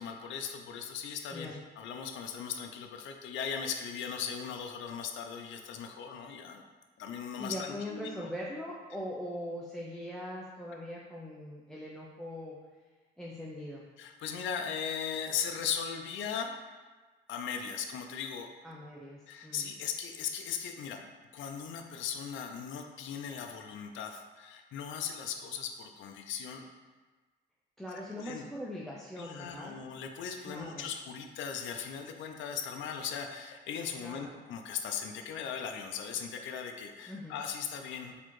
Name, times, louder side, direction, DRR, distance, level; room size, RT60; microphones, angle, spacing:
voice 1, 0.0-6.6 7.0-8.3 14.0-16.5 17.3-18.5 19.3-21.0 21.3-26.7 28.2-28.5 29.2-38.2, left 7 dB, 75° left, 5 dB, 0.4 m, -38 dB
voice 2, 7.4-12.6 13.2-13.8 18.6-19.7 27.8-29.8 30.5-30.9 34.0-34.4 37.1-37.3, left 1 dB, ahead, -4 dB, 0.4 m, -41 dB
4.1 x 2.8 x 3.0 m, 1.3 s
cardioid pair, 90°, 20 cm